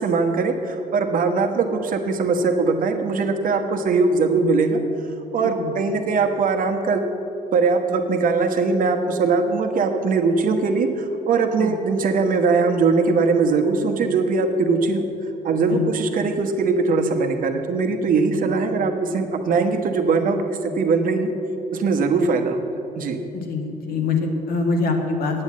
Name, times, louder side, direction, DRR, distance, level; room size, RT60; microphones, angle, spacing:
voice 1, 0.0-4.8 5.3-7.0 7.5-15.0 15.4-21.3 21.7-22.6 23.0-23.2, right 4 dB, 55° right, 5 dB, 1.2 m, -21 dB
voice 2, 23.5-25.4, left 3 dB, 60° left, 2 dB, 1.9 m, -24 dB
8.8 x 8.1 x 8.5 m, 2.9 s
cardioid pair, 110°, 17 cm